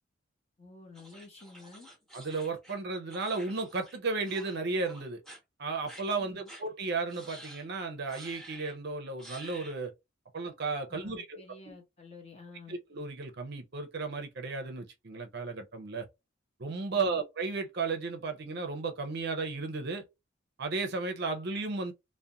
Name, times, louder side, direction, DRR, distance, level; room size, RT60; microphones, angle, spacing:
voice 1, 0.6-1.9 6.2-6.5 10.9-12.8 16.9-17.2, left 3 dB, 30° left, 0.8 m, -51 dB
sound 1, 0.9-4.0 4.2-4.6 4.8-5.4 5.9-6.0 6.5-6.6 7.1-7.7 8.1-8.8 9.2-9.8, right 1 dB, ahead, 0.9 m, -50 dB
voice 2, 2.1-5.2 5.6-9.9 10.3-11.4 12.7-16.1 16.6-20.0 20.6-21.9, right 3 dB, 50° right, 0.5 m, -34 dB
2.4 x 2.1 x 2.7 m
head